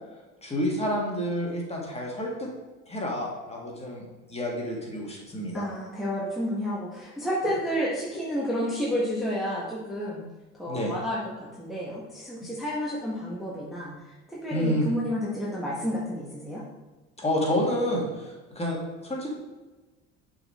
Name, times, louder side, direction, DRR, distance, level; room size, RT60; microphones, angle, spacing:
voice 1, 0.4-2.5 2.9-4.0 4.3-5.7 10.7-10.9 14.5-14.9 17.2-19.3, equal, 20° left, -2 dB, 2.1 m, -29 dB
voice 2, 5.5-10.2 10.5-16.6, equal, ahead, -7 dB, 1.5 m, -31 dB
6.5 x 4.3 x 4.3 m, 1.2 s
hypercardioid pair, 75°, 34 cm